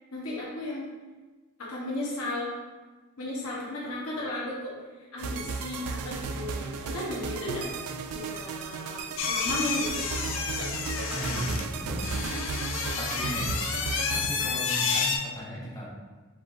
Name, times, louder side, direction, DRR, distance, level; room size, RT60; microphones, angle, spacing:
voice 1, 0.1-0.9 1.6-2.5 3.2-7.7 8.1-10.3 10.6-11.9 14.4-14.5, left 1 dB, 75° left, -5 dB, 0.9 m, -35 dB
sound 1, 5.2-14.3, right 4 dB, 90° right, 0.3 m, -35 dB
sound 2, 9.2-15.2, left 5 dB, 60° left, 0.4 m, -30 dB
voice 2, 11.1-12.1 13.0-13.5 14.1-15.9, equal, 15° left, -6 dB, 0.8 m, -36 dB
5.0 x 3.6 x 2.4 m, 1.3 s
head